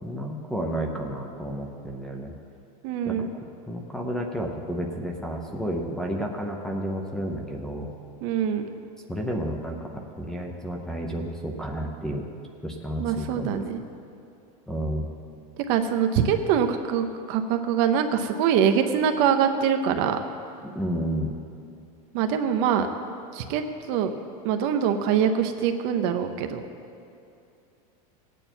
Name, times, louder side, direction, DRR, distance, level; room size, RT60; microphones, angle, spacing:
voice 1, 0.0-2.3 3.0-3.3 3.7-7.9 9.1-12.3 12.6-13.6 14.7-15.1 20.7-21.3, equal, 5° left, 1 dB, 0.6 m, -31 dB
voice 2, 2.8-3.3 8.2-8.7 13.0-13.8 15.7-20.2 22.1-22.9 23.3-23.6 23.9-24.1 24.4-26.6, right 8 dB, 45° right, 7 dB, 0.8 m, -24 dB
17.0 x 9.1 x 4.5 m, 2.6 s
supercardioid pair, 165°, 19 cm